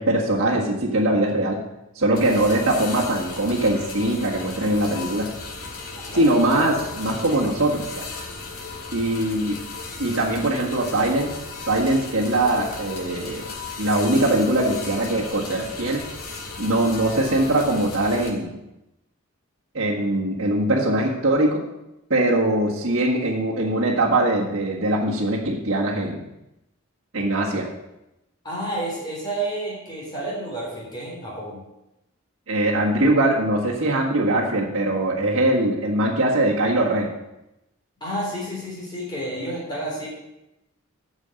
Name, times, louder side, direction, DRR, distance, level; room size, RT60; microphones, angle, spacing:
voice 1, 0.0-1.6 1.9-5.3 6.1-8.0 8.9-9.6 10.0-11.3 11.7-13.4 13.8-16.0 16.6-18.5 19.7-21.6 22.1-26.2 27.1-27.7 32.5-37.1, right 1 dB, 60° right, -6 dB, 1.7 m, -22 dB
sound 1, 2.1-18.3, left 3 dB, 90° left, 2.3 m, -36 dB
voice 2, 28.4-31.6 38.0-40.1, right 1 dB, 20° left, -4 dB, 3.7 m, -30 dB
9.7 x 6.5 x 7.7 m, 0.90 s
head